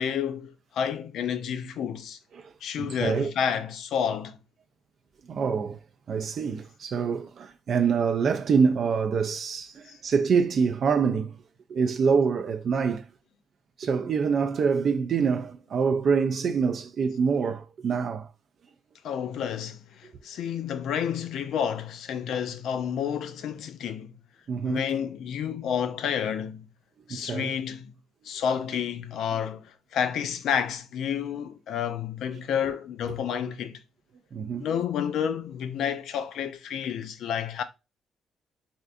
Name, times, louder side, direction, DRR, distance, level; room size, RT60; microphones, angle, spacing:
voice 1, 0.0-2.2 2.6-4.4 19.0-24.1 24.6-26.7 27.1-27.9 28.2-33.8 34.6-37.6, left 8 dB, 75° left, 0.4 m, -30 dB
voice 2, 2.8-3.3 5.3-5.8 6.1-11.4 11.7-13.1 13.8-18.3 24.5-24.8 27.1-27.5 34.3-34.7, right 5 dB, 55° right, 0.3 m, -25 dB
3.4 x 2.6 x 2.4 m
cardioid pair, 90°, 0 cm